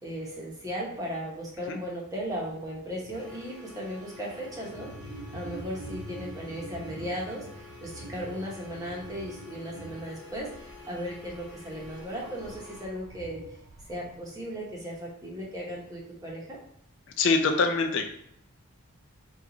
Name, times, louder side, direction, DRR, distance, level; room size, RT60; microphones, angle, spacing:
voice 1, 0.0-13.4 13.9-16.6, equal, 15° right, -3 dB, 0.8 m, -37 dB
sound 1, 2.5-2.6 2.9-3.3 4.3-14.2, right 2 dB, 75° right, 0.6 m, -45 dB
sound 2, 3.1-12.8, left 3 dB, 20° left, 1.2 m, -49 dB
voice 2, 17.2-18.1, left 4 dB, 55° left, 5 dB, 0.4 m, -24 dB
4.4 x 2.3 x 3.8 m, 0.70 s
head